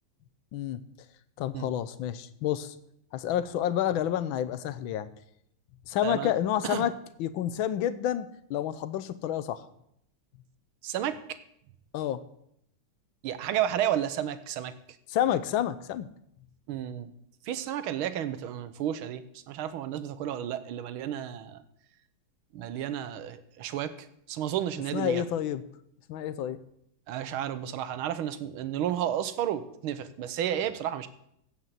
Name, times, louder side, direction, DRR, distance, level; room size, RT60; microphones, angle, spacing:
voice 1, 1.4-2.7 3.1-5.1 5.9-6.9 7.2-9.7 11.9-12.2 15.1-16.1 24.9-25.6 26.1-26.6, left 11 dB, 75° left, 13 dB, 1.5 m, -29 dB
voice 2, 10.8-11.2 13.2-14.7 16.7-17.1 17.5-21.6 22.5-23.9 24.3-25.2 27.1-31.1, right 10 dB, 90° right, 12 dB, 1.7 m, -32 dB
15.5 x 5.6 x 7.4 m, 0.73 s
omnidirectional pair, 2.2 m